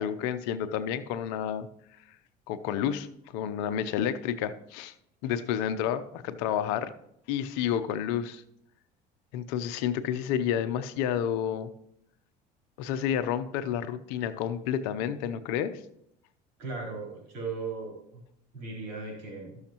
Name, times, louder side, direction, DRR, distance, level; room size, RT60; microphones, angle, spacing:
voice 1, 0.0-1.7 2.5-3.1 3.3-4.9 5.2-6.9 7.3-8.4 9.3-11.7 12.8-15.7, left 9 dB, 80° left, 12 dB, 0.7 m, -30 dB
voice 2, 16.6-18.2 18.5-19.6, right 4 dB, 70° right, -3 dB, 3.8 m, -37 dB
13.0 x 6.4 x 2.9 m, 0.76 s
supercardioid pair, 80°, 21 cm